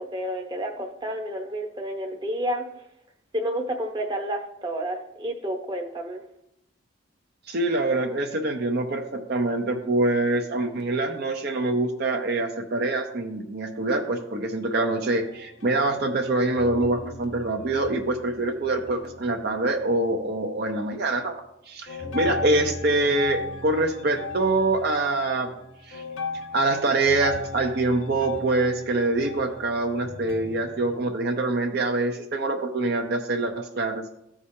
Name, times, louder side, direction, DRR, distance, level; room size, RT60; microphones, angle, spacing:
voice 1, 0.1-2.6 3.3-6.2, right 1 dB, 20° right, 2 dB, 0.8 m, -30 dB
voice 2, 7.5-21.4 21.7-25.5 25.9-26.0 26.5-34.1, right 2 dB, 50° right, 3 dB, 0.7 m, -25 dB
sound 1, 15.2-16.3 16.6-20.3 20.7-21.2 21.9-31.0, left 3 dB, 80° left, 1.0 m, -37 dB
14.0 x 4.9 x 2.7 m, 0.80 s
head